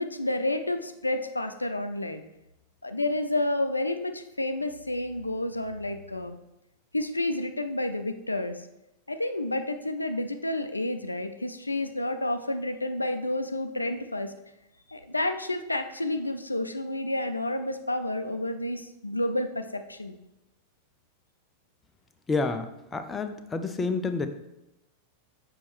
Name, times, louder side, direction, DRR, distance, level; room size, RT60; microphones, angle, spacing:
voice 1, 0.0-2.2 2.8-6.4 6.9-8.7 9.1-14.3 14.9-20.2, left 1 dB, 85° left, 8 dB, 0.4 m, -30 dB
voice 2, 22.3-24.3, left 4 dB, 15° left, 7 dB, 0.5 m, -29 dB
6.9 x 5.3 x 3.2 m, 0.91 s
figure-of-eight pair, 90°, 0 cm